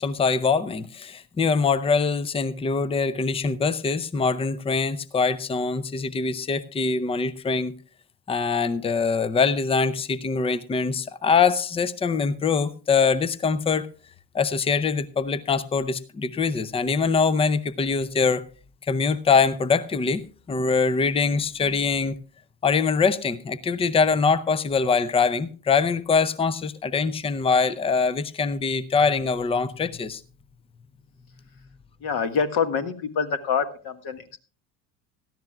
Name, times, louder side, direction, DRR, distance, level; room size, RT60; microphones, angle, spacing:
voice 1, 0.0-7.8 8.3-13.9 14.3-18.5 18.9-22.2 22.6-30.2, left 5 dB, 10° left, 18 dB, 0.6 m, -23 dB
voice 2, 32.0-34.4, left 6 dB, 45° left, 8 dB, 1.7 m, -26 dB
17.0 x 13.5 x 2.4 m, 0.36 s
hypercardioid pair, 65°, 50 cm